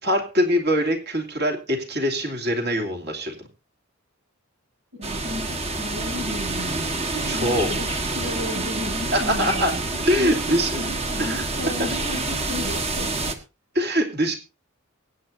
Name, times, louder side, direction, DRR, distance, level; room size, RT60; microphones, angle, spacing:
voice 1, 0.0-3.5 7.3-7.7 9.1-9.7 10.1-10.8 11.2-11.4 13.7-14.4, equal, 50° right, 2 dB, 2.8 m, -23 dB
voice 2, 4.9-7.9 8.1-9.8 10.1-13.3, left 1 dB, 80° right, -4 dB, 7.6 m, -34 dB
sound 1, 5.0-13.4, right 2 dB, 30° right, 1.4 m, -27 dB
23.5 x 9.2 x 2.7 m, 0.32 s
head